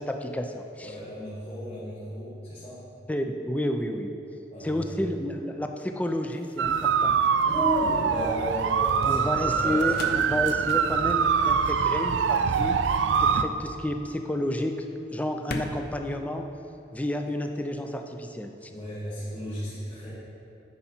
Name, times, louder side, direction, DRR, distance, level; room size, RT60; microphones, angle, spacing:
voice 1, 0.0-0.9 3.1-4.1 4.6-7.2 9.1-12.8 13.2-14.7 15.1-16.5 16.9-18.7, left 1 dB, 10° left, 5 dB, 0.4 m, -30 dB
voice 2, 0.8-2.8 4.5-4.9 7.4-10.2 18.7-20.1, equal, 35° left, -10 dB, 1.9 m, -34 dB
sound 1, 3.5-17.3, left 2 dB, 60° left, 0.6 m, -44 dB
sound 2, 6.6-13.4, right 6 dB, 90° right, 0.4 m, -24 dB
9.6 x 5.5 x 4.3 m, 2.9 s
head